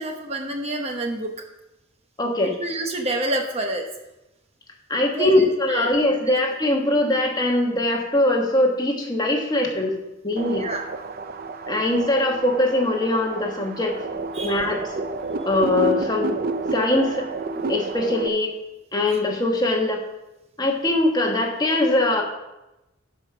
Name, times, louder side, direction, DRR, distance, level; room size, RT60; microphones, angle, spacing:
voice 1, 0.0-1.3 2.4-3.8 5.1-5.9 10.6-10.8 14.3-14.6, right 2 dB, 30° right, 3 dB, 1.0 m, -28 dB
voice 2, 2.2-2.5 4.9-9.9 10.2-10.6 11.7-13.9 14.4-14.8 15.4-16.4 16.7-17.3 17.5-18.5 18.9-20.0 20.6-22.2, left 1 dB, 20° left, 1 dB, 1.3 m, -21 dB
sound 1, 10.4-18.3, right 3 dB, 45° right, 0.5 m, -30 dB
11.0 x 5.1 x 6.0 m, 0.95 s
head